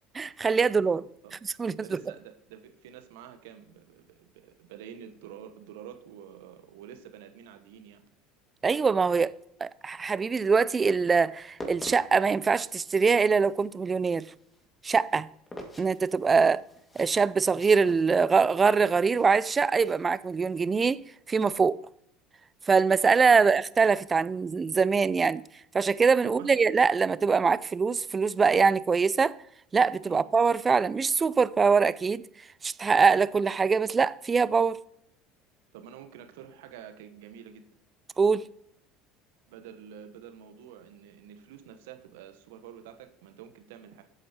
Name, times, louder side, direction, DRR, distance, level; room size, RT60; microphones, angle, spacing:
voice 1, 0.1-1.0 1.4-1.8 8.6-9.3 9.6-14.3 14.8-15.3 15.8-16.6 17.0-21.0 21.3-21.8 22.7-25.4 25.7-29.4 29.7-32.2 32.6-34.8 38.2-38.4, right 5 dB, 25° right, 0.4 m, -23 dB
voice 2, 1.7-8.0 16.5-16.6 23.3-23.5 26.2-26.5 30.1-30.2 35.7-37.6 39.5-44.0, right 9 dB, 70° right, 1.0 m, -48 dB
sound 1, 11.3-20.9, equal, 15° left, 2.1 m, -48 dB
12.5 x 8.1 x 3.0 m
hypercardioid pair, 70°, 0 cm